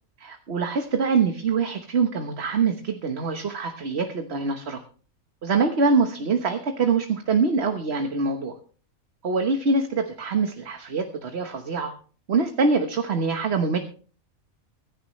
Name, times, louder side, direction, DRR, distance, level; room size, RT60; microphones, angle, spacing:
voice 1, 0.2-4.8 5.4-8.5 9.2-11.9 12.3-13.8, right 4 dB, 50° right, 5 dB, 1.4 m, -24 dB
25.0 x 10.5 x 3.2 m, 0.42 s
omnidirectional pair, 1.5 m